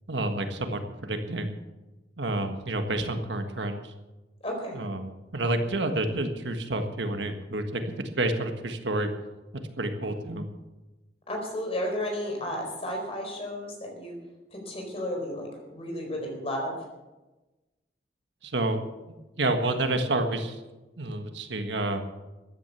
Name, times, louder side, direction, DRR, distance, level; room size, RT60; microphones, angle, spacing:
voice 1, 0.1-1.6 2.2-3.9 4.7-7.8 8.2-9.1 9.5-10.4 18.4-18.8 19.4-20.6 21.0-22.0, right 2 dB, 80° right, 6 dB, 1.6 m, -29 dB
voice 2, 4.4-4.8 11.3-14.1 14.5-16.8, left 1 dB, 35° left, 1 dB, 4.5 m, -33 dB
14.5 x 11.0 x 7.0 m, 1.1 s
head